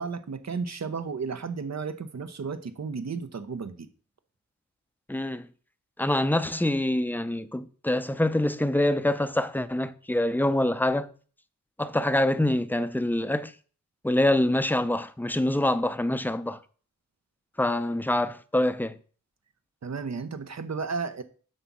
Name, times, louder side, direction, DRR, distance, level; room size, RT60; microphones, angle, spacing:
voice 1, 0.0-3.9 19.8-21.2, right 5 dB, 60° right, 0.8 m, -33 dB
voice 2, 5.1-5.5 6.0-11.1 11.8-13.5 14.0-16.6 17.6-19.0, left 1 dB, 5° left, 0.6 m, -25 dB
7.6 x 4.1 x 6.0 m
cardioid pair, 60°, 31 cm